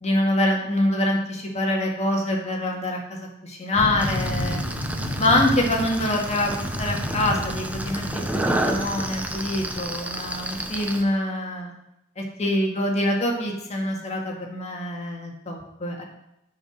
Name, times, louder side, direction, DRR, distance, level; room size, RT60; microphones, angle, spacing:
voice 1, 0.0-4.6 5.2-11.7 12.2-16.0, left 1 dB, 35° left, 0 dB, 1.8 m, -25 dB
sound 1, 3.7-9.8, equal, 85° right, 2.3 m, -31 dB
sound 2, 4.0-11.0, right 1 dB, 10° right, 0.7 m, -31 dB
10.5 x 4.9 x 6.2 m, 0.81 s
head